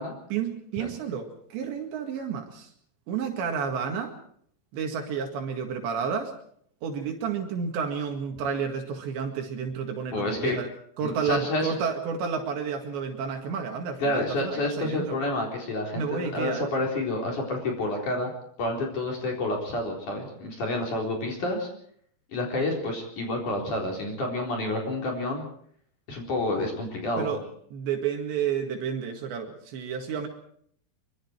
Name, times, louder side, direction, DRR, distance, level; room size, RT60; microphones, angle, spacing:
voice 1, 0.3-2.7 3.1-4.1 4.7-6.3 6.8-10.7 11.0-15.2 15.9-16.7 27.2-27.4 27.7-30.3, right 6 dB, 80° right, 3 dB, 4.2 m, -31 dB
voice 2, 10.1-10.6 11.0-11.7 14.0-18.3 18.6-21.7 22.3-25.5 26.1-27.4, left 2 dB, 45° left, 0 dB, 5.3 m, -29 dB
24.5 x 24.0 x 4.6 m, 0.64 s
omnidirectional pair, 5.1 m